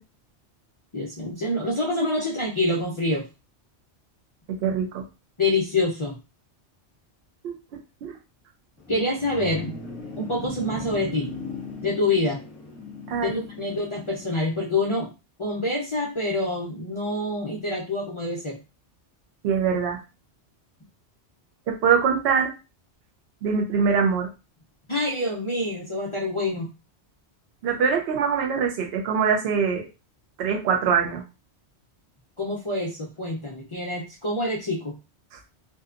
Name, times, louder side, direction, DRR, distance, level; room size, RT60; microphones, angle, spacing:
voice 1, 0.9-3.3 5.4-6.1 8.9-9.8 10.2-11.3 11.8-12.4 13.2-15.1 15.4-18.6 24.9-26.7 32.4-34.9, left 2 dB, 40° left, -2 dB, 0.4 m, -26 dB
voice 2, 4.5-5.0 7.4-7.5 8.0-8.2 13.1-13.4 19.4-20.0 21.7-22.5 23.4-24.3 27.6-29.9 30.4-31.2, right 6 dB, 70° right, 2 dB, 0.8 m, -23 dB
sound 1, 8.8-14.4, left 2 dB, ahead, 0.8 m, -38 dB
2.7 x 2.2 x 2.4 m, 0.28 s
omnidirectional pair, 1.2 m